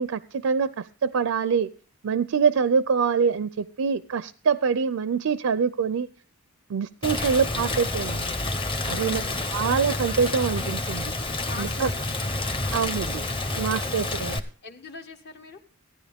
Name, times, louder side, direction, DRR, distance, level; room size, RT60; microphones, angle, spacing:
voice 1, 0.0-1.7 2.0-6.1 6.7-8.3 8.8-9.2 9.5-11.1 11.6-11.9 12.7-13.2 13.6-14.4, right 6 dB, 70° right, 0.4 m, -25 dB
Rain, 7.0-14.4, left 2 dB, 25° left, 0.8 m, -29 dB
voice 2, 8.9-9.5 11.5-13.2 14.0-15.6, left 3 dB, 50° left, 1.0 m, -43 dB
15.0 x 10.0 x 3.5 m
head